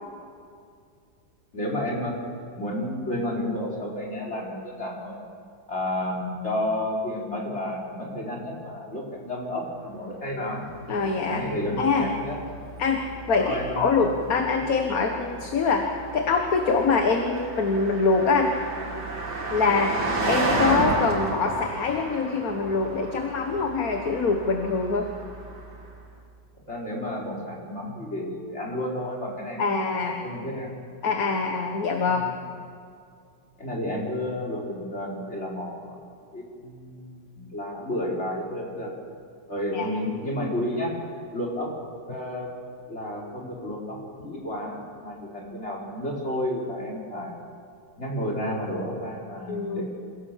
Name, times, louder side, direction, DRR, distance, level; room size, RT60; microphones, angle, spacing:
voice 1, 1.5-2.2 2.5-5.2 5.7-10.6 11.2-12.4 13.3-14.0 14.5-14.6 19.9-20.0 26.7-29.7 30.2-30.7 32.0-32.3 33.6-35.9 36.3-38.9 39.5-40.9 41.3-41.7 42.1-42.5 42.9-44.0 44.2-47.4 48.0-49.8, left 1 dB, 35° left, -3 dB, 4.6 m, -31 dB
Car passing by, 10.2-25.9, right 2 dB, 60° right, 3.2 m, -33 dB
voice 2, 10.9-11.4 11.8-12.1 12.8-13.0 13.3-15.9 16.1-18.5 19.5-19.9 20.2-25.1 29.6-30.3 31.0-32.3 39.7-39.9 49.5-49.8, left 4 dB, 50° left, 3 dB, 1.8 m, -24 dB
27.0 x 17.0 x 7.5 m, 2.3 s
omnidirectional pair, 2.1 m